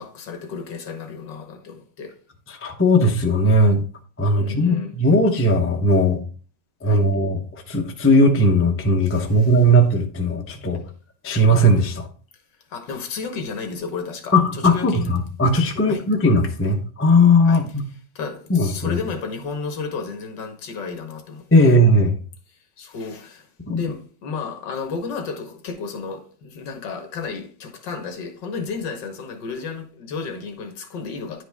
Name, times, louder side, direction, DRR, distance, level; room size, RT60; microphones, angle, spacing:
voice 1, 0.0-2.2 4.4-4.9 6.8-7.0 9.0-9.5 12.7-15.1 15.9-16.0 17.4-17.6 18.2-21.8 22.5-31.4, left 4 dB, 70° left, 1.8 m, -32 dB
voice 2, 2.6-3.8 4.2-6.2 6.8-10.8 11.2-12.1 14.3-17.8 18.5-19.0 21.5-22.1 23.7-23.8, equal, 20° left, 0.3 m, -18 dB
10.0 x 4.9 x 3.5 m
omnidirectional pair, 2.0 m